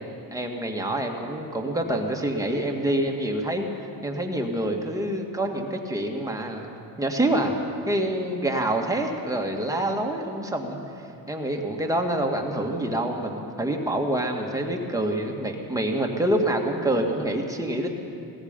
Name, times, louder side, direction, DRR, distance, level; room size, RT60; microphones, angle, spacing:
voice 1, 0.3-3.7 4.0-6.7 7.0-7.5 7.9-10.8 11.3-17.9, right 1 dB, 10° right, 1 dB, 1.9 m, -26 dB
18.0 x 14.5 x 5.4 m, 2.6 s
supercardioid pair, 85°, 42 cm